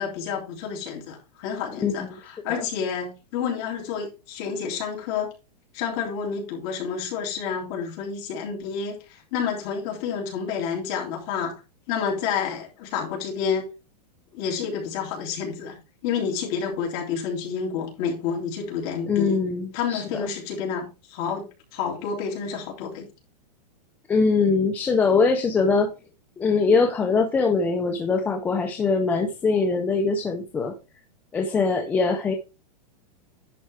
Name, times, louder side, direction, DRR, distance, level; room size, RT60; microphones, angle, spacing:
voice 1, 0.0-5.3 5.7-11.5 11.9-13.7 14.3-15.8 16.0-19.4 19.7-21.5 21.7-23.0, left 6 dB, 35° left, -1 dB, 3.4 m, -29 dB
voice 2, 19.1-20.3 24.1-25.9 26.4-30.7 31.3-32.3, left 4 dB, 10° left, 4 dB, 0.5 m, -22 dB
11.0 x 4.6 x 4.7 m, 0.29 s
supercardioid pair, 170°, 21 cm